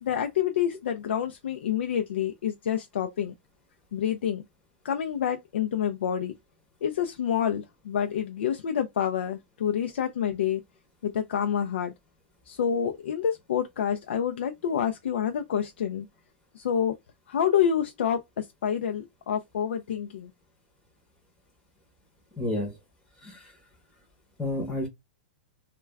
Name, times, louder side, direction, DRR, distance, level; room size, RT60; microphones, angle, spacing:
voice 1, 0.0-3.3 3.9-4.4 4.8-6.3 6.8-10.6 11.0-11.9 12.5-16.1 16.5-16.9 17.3-20.3, left 9 dB, 75° left, 0.4 m, -28 dB
voice 2, 22.4-22.8 23.2-23.5 24.4-24.9, left 1 dB, 5° left, 0.7 m, -30 dB
2.2 x 2.2 x 3.3 m
hypercardioid pair, 165°, 6 cm